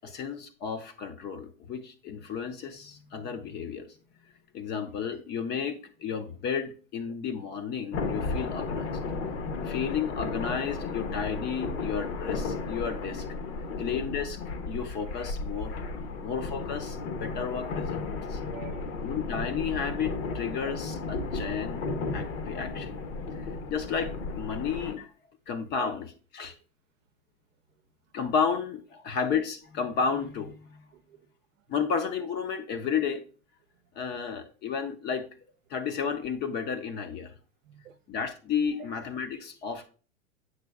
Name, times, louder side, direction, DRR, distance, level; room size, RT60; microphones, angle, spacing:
voice 1, 0.0-3.9 4.5-9.0 9.6-13.3 13.8-14.4 14.7-15.8 16.2-18.0 18.3-18.4 19.0-21.8 22.1-22.9 23.4-25.1 25.5-26.5 28.1-30.8 31.7-33.2 34.0-35.3 35.7-37.3 38.1-39.9, left 6 dB, 25° left, 0.5 m, -32 dB
sound 1, 7.9-24.9, left 3 dB, 60° left, 1.0 m, -34 dB
voice 2, 18.3-19.2 25.6-25.8 30.9-31.3 37.6-38.0, right 13 dB, 75° right, 0.7 m, -51 dB
7.9 x 6.0 x 2.3 m
hypercardioid pair, 105°, 39 cm